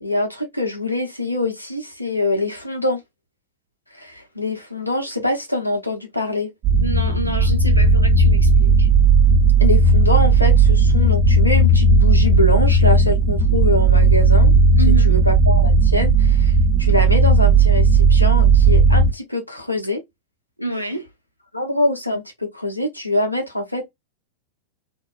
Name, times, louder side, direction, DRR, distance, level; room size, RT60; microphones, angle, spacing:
voice 1, 0.0-3.0 3.9-6.5 9.6-14.6 15.0-20.0 21.5-23.9, left 2 dB, 90° left, 0.8 m, -24 dB
sound 1, 6.6-19.1, right 3 dB, 40° right, 0.9 m, -14 dB
voice 2, 6.8-8.9 14.8-15.2 20.6-21.0, right 1 dB, 90° right, 0.6 m, -28 dB
2.7 x 2.3 x 2.3 m
figure-of-eight pair, 90°, 0 cm